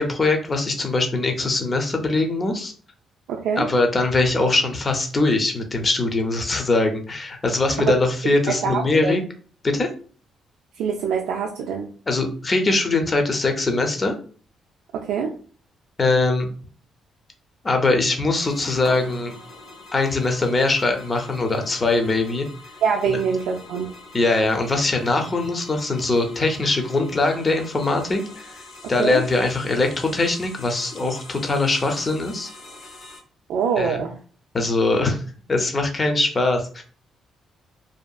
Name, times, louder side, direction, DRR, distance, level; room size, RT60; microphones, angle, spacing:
voice 1, 0.0-2.7 3.6-9.2 9.6-9.9 12.1-14.1 16.0-16.5 17.6-19.3 19.9-22.5 23.0-23.2 24.1-28.6 28.9-32.5 33.8-34.0 34.5-35.2 35.5-36.8, left 2 dB, 30° left, 4 dB, 0.6 m, -22 dB
voice 2, 3.3-3.7 7.8-8.0 8.5-9.2 10.8-11.9 14.9-15.3 22.8-23.9 29.0-29.2 33.5-34.2, right 6 dB, 85° right, 0 dB, 0.3 m, -24 dB
sound 1, 18.4-33.2, left 2 dB, 70° left, 1.2 m, -44 dB
sound 2, 18.8-21.6, left 1 dB, 50° left, 0.9 m, -45 dB
2.7 x 2.4 x 2.3 m, 0.41 s
cardioid pair, 90°, 0 cm